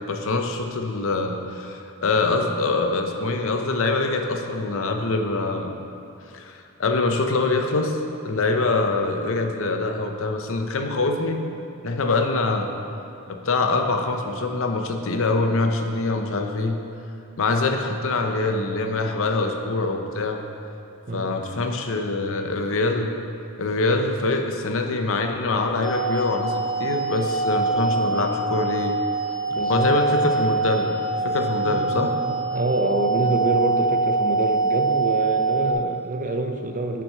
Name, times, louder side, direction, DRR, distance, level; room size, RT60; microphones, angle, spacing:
voice 1, 0.1-5.7 6.3-8.0 8.2-11.4 11.8-12.7 13.3-16.8 17.4-20.4 21.1-23.1 23.6-28.9 29.7-30.9 31.2-32.1, left 3 dB, 65° left, 4 dB, 0.7 m, -24 dB
sound 1, 25.8-35.7, right 3 dB, ahead, 1.1 m, -24 dB
voice 2, 27.7-28.2 29.6-30.0 31.4-37.0, right 2 dB, 35° right, 5 dB, 0.5 m, -27 dB
6.9 x 6.0 x 5.5 m, 2.8 s
head